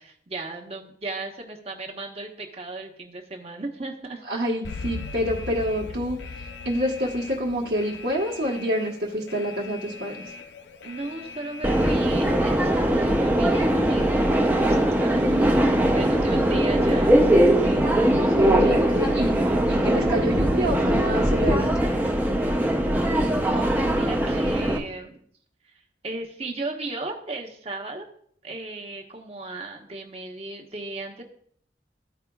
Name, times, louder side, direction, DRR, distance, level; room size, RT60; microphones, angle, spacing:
voice 1, 0.0-4.2 10.8-17.2 17.6-18.0 23.4-25.2 26.0-28.0 28.4-31.2, right 2 dB, 35° right, 2 dB, 1.0 m, -36 dB
voice 2, 4.3-6.2 6.6-10.2 15.1-15.8 18.0-21.9, equal, 65° right, -6 dB, 1.3 m, -28 dB
Alarm, 4.6-12.3, left 3 dB, 85° left, 0.6 m, -39 dB
Subway metro underground, 11.6-24.8, right 1 dB, 10° right, 0.6 m, -21 dB
14.0 x 4.9 x 2.3 m, 0.63 s
head